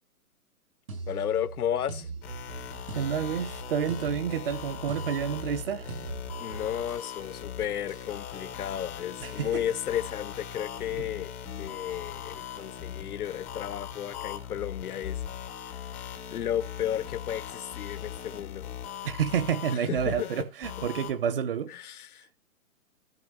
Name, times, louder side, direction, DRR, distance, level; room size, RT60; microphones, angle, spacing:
sound 1, 0.9-7.2 7.9-8.2, right 4 dB, 75° right, 5.9 m, -41 dB
voice 1, 1.1-2.1 6.4-11.3 11.6-15.4 15.7-15.9 16.3-18.7 19.7-20.3 21.7-22.3, left 10 dB, 80° left, 0.8 m, -33 dB
sound 2, 2.2-21.1, left 9 dB, 5° left, 0.6 m, -40 dB
voice 2, 2.9-5.9 9.2-9.6 19.0-21.7, right 8 dB, 40° right, 0.8 m, -29 dB
13.5 x 5.4 x 6.6 m
hypercardioid pair, 160°, 44 cm